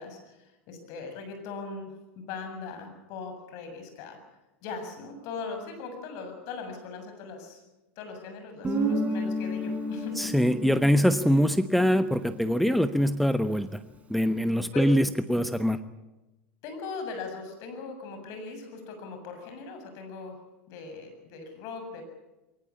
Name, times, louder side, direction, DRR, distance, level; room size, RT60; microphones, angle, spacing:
voice 1, 0.0-4.2 4.6-7.6 8.0-10.2 14.7-14.8 16.6-20.4 20.7-22.0, left 4 dB, 55° left, 5 dB, 7.3 m, -40 dB
Guitar, 8.6-13.2, equal, 20° right, 4.7 m, -32 dB
voice 2, 10.2-13.8 14.1-15.8, equal, ahead, 11 dB, 1.1 m, -23 dB
22.0 x 19.0 x 8.5 m, 1.0 s
hypercardioid pair, 90°, 7 cm